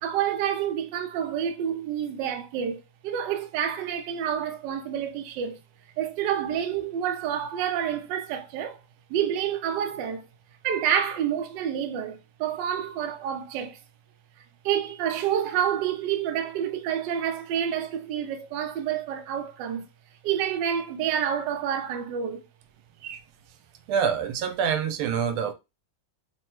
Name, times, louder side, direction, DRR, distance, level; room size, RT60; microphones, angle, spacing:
voice 1, 0.0-5.6 6.0-8.8 9.1-10.3 10.6-13.8 14.6-19.9 20.2-22.4, right 9 dB, 70° right, 1.1 m, -28 dB
voice 2, 23.9-25.5, right 7 dB, 90° right, 1.5 m, -26 dB
3.8 x 2.1 x 4.3 m
omnidirectional pair, 2.3 m